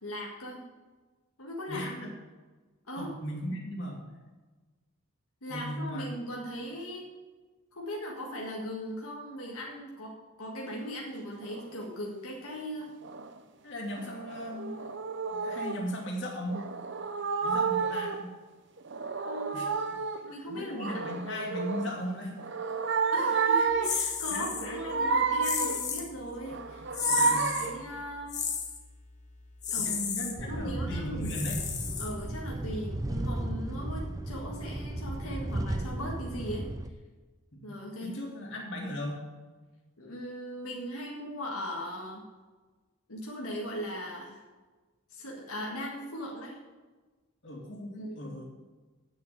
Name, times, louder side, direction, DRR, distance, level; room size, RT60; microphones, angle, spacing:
voice 1, 0.0-0.6 1.4-2.1 2.9-3.2 5.4-7.1 7.7-12.9 19.2-19.6 20.2-21.2 23.1-28.4 29.7-30.0 30.4-31.4 32.0-36.7 37.6-38.1 40.0-42.2 43.1-44.4 45.1-46.6 47.9-48.4, equal, 80° left, -2 dB, 1.8 m, -39 dB
voice 2, 1.7-2.1 3.0-4.0 5.5-6.1 13.6-14.9 15.3-16.6 17.4-18.3 19.5-19.7 20.5-22.4 24.3-24.8 27.2-27.5 29.8-31.6 37.5-39.2 47.4-48.4, equal, 55° left, -1 dB, 2.5 m, -37 dB
sound 1, 11.4-11.7 13.0-13.4 13.9-15.8 16.5-18.3 18.8-20.3 20.7-22.0 22.4-24.1 24.5-25.9 26.4-27.9, right 4 dB, 55° right, 0.7 m, -30 dB
sound 2, 23.8-24.7 25.4-26.1 26.9-27.7 28.3-28.8 29.6-30.3 31.2-32.4, left 7 dB, 35° left, 1.2 m, -33 dB
sound 3, 30.4-36.9, right 1 dB, 15° right, 0.4 m, -35 dB
9.1 x 6.7 x 7.9 m, 1.3 s
head